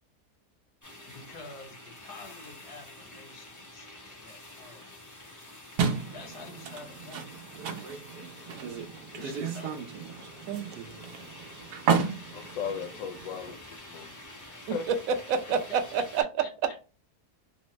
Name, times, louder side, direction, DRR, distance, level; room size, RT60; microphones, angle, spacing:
sound 1, 0.8-16.2, left 1 dB, 25° left, 0.4 m, -48 dB
voice 1, 1.1-5.0 6.1-7.5 9.1-9.9 15.7-16.8, left 3 dB, 85° left, 1.4 m, -48 dB
sound 2, 5.8-13.5, right 6 dB, 90° right, 1.2 m, -33 dB
voice 2, 10.5-11.0 14.7-16.2, right 5 dB, 70° right, 0.9 m, -29 dB
voice 3, 12.3-14.2 14.5-14.8, left 7 dB, 70° left, 0.9 m, -37 dB
3.4 x 2.1 x 3.0 m
omnidirectional pair, 1.7 m